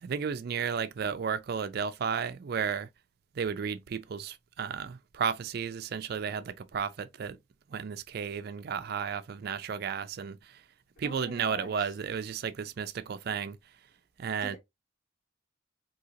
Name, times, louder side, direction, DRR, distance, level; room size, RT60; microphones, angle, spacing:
voice 1, 0.0-2.9 3.3-7.4 7.7-10.6 11.0-13.6 14.2-14.6, right 6 dB, 50° right, 0.4 m, -33 dB
voice 2, 11.0-11.9 14.4-14.6, left 1 dB, 45° left, 0.9 m, -45 dB
3.6 x 2.8 x 2.8 m
head